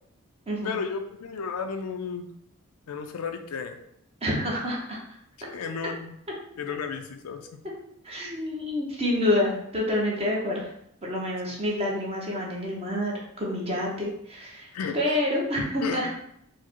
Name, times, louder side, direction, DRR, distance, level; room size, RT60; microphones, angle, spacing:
voice 1, 0.6-2.3 2.9-3.8 5.5-6.2 6.6-7.5 14.7-15.2 15.8-16.0, left 5 dB, 85° left, 6 dB, 0.4 m, -33 dB
voice 2, 4.2-5.0 8.0-10.7 11.0-14.7 14.9-16.1, left 1 dB, 25° right, -3 dB, 0.8 m, -28 dB
4.6 x 2.1 x 4.4 m, 0.75 s
head